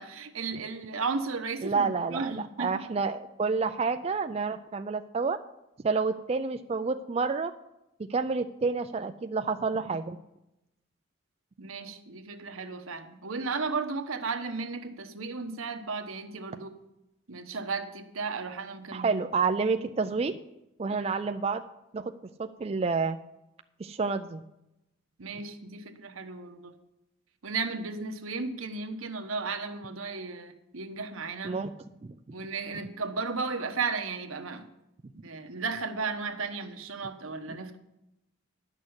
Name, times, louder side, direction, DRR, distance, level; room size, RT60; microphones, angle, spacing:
voice 1, 0.0-2.8 5.9-6.0 11.6-16.7 17.3-19.2 25.2-26.7 27.4-31.6 32.3-34.7 35.2-37.8, right 4 dB, 80° right, 6 dB, 1.1 m, -34 dB
voice 2, 1.6-5.4 5.8-7.5 8.1-10.2 18.9-20.3 20.8-21.6 21.9-22.1 22.4-23.2 23.8-24.4 31.4-31.7, right 4 dB, 30° right, 7 dB, 0.3 m, -29 dB
10.5 x 6.4 x 7.9 m, 0.89 s
head